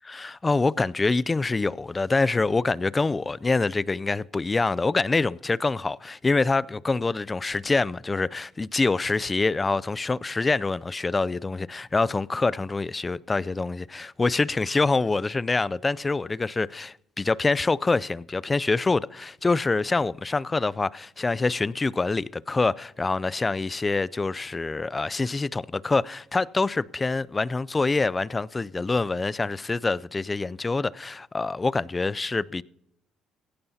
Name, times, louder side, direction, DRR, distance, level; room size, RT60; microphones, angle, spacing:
voice 1, 0.1-32.6, left 3 dB, 25° left, 0.4 m, -25 dB
17.0 x 16.5 x 2.8 m
supercardioid pair, 60°, 0 cm